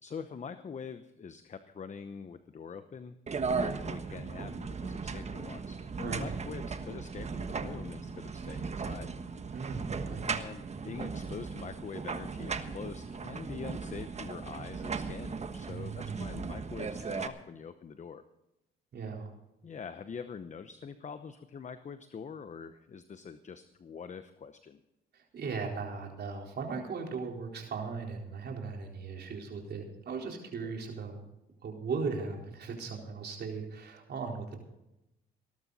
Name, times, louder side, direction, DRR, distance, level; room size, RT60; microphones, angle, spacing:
voice 1, 0.0-9.1 10.3-18.2 19.6-24.8 30.6-30.7, left 6 dB, 35° left, 10 dB, 0.9 m, -44 dB
sound 1, 3.3-17.3, right 5 dB, 35° right, 1.3 m, -37 dB
voice 2, 9.5-10.3 15.7-16.3 18.9-19.3 25.1-31.2 31.6-34.6, right 4 dB, 55° right, 0 dB, 4.2 m, -38 dB
19.0 x 12.5 x 4.2 m, 0.90 s
cardioid pair, 90°, 20 cm